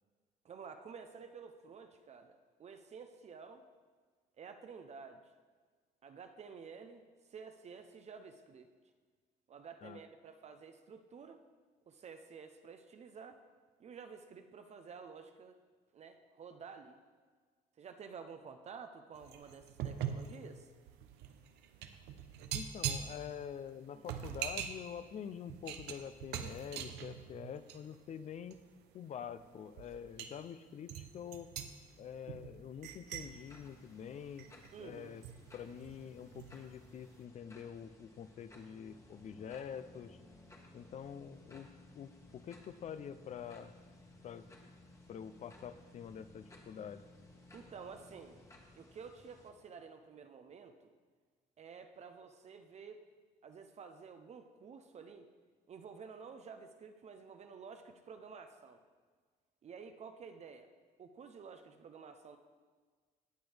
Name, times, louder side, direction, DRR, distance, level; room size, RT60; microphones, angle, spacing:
voice 1, 0.4-3.6 4.4-5.2 6.0-8.7 9.5-11.4 11.9-13.4 13.8-15.6 15.9-17.0 17.8-20.7 23.9-24.1 34.7-35.2 47.5-48.4 48.8-50.9 51.6-53.1 53.4-55.3 55.7-58.8 59.6-60.7 61.0-62.4, right 5 dB, 40° right, 7 dB, 0.7 m, -51 dB
sound 1, 19.2-28.0 28.4-28.6 29.3-29.4 29.8-30.3 30.9-34.8 35.2-36.6 36.9-37.1, right 9 dB, 85° right, 0.7 m, -43 dB
voice 2, 22.5-28.6 28.9-31.5 32.0-34.5 34.8-35.2 35.5-40.2 40.7-41.7 41.9-43.7 44.2-44.5 45.1-47.0, left 8 dB, 45° left, 13 dB, 0.5 m, -46 dB
sound 2, 33.2-49.5, left 2 dB, 15° left, 1.3 m, -61 dB
sound 3, 38.6-50.1, left 1 dB, 5° right, 0.8 m, -61 dB
17.5 x 6.1 x 3.4 m, 1.5 s
cardioid pair, 110°, 17 cm